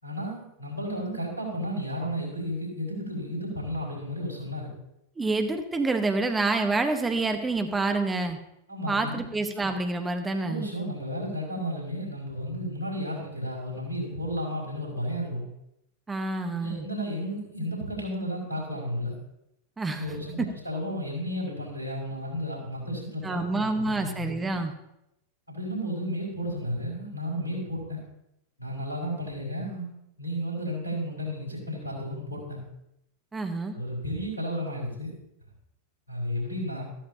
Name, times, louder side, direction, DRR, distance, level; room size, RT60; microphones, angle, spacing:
voice 1, 0.0-4.7 8.7-9.2 10.4-15.5 16.6-19.2 20.0-24.2 25.5-28.0 28.6-29.9 30.2-32.6 33.7-35.1 36.1-36.8, equal, 85° left, -4 dB, 5.1 m, -33 dB
voice 2, 5.2-8.4 8.9-10.7 16.1-16.9 19.8-20.0 23.2-24.7 33.3-33.8, right 3 dB, 15° right, 6 dB, 1.2 m, -27 dB
14.0 x 13.0 x 2.8 m, 0.82 s
figure-of-eight pair, 90°, 0 cm